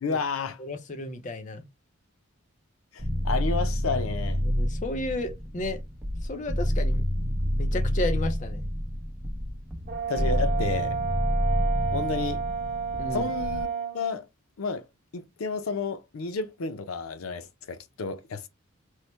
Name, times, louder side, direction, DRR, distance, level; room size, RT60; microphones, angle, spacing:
voice 1, 0.0-0.6 2.9-4.4 10.1-11.0 11.9-12.4 13.1-13.7 13.9-14.3 14.6-14.8 15.1-18.5, left 4 dB, 90° left, 0.5 m, -31 dB
voice 2, 0.6-1.6 4.4-5.8 6.2-7.0 7.6-8.6 13.0-13.3, left 2 dB, 35° left, 0.5 m, -33 dB
sound 1, 3.0-13.6, equal, 5° right, 0.7 m, -28 dB
Brass instrument, 9.9-14.0, right 6 dB, 45° right, 1.0 m, -31 dB
3.1 x 2.1 x 4.2 m
head